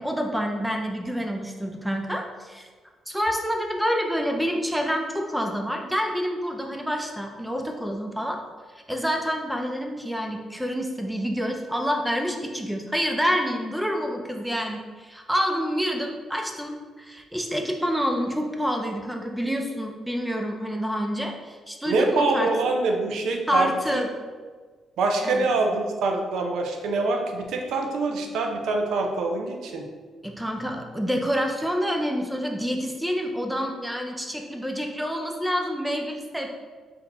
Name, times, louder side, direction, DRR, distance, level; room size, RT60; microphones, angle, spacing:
voice 1, 0.0-2.7 3.1-8.4 8.9-22.5 23.5-24.1 25.2-25.5 30.2-36.5, equal, ahead, 2 dB, 0.3 m, -27 dB
voice 2, 21.9-24.0 25.0-29.8, right 3 dB, 80° right, 2 dB, 0.6 m, -25 dB
4.2 x 2.8 x 4.0 m, 1.5 s
cardioid pair, 160°, 0 cm